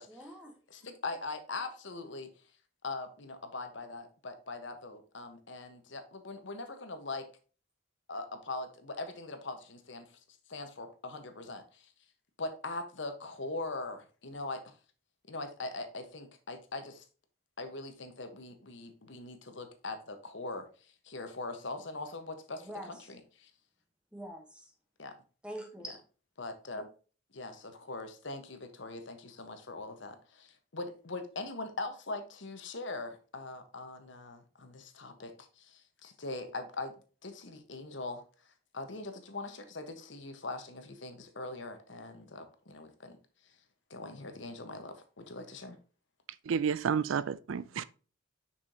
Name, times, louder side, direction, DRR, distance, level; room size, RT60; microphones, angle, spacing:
voice 1, 0.1-0.5 22.6-23.1 24.1-24.7 25.4-26.0, equal, 5° right, 1.2 m, -44 dB
voice 2, 0.7-2.3 2.8-7.3 8.1-10.1 10.5-11.9 12.4-14.7 15.3-17.0 17.6-23.5 25.0-25.1 25.8-26.0 26.4-26.9 27.3-36.9 37.2-38.2 38.7-43.2 43.4-43.5 43.9-45.8, left 2 dB, 65° left, 1.3 m, -41 dB
voice 3, 46.5-47.8, right 6 dB, 85° right, 0.4 m, -30 dB
6.4 x 6.1 x 2.9 m
head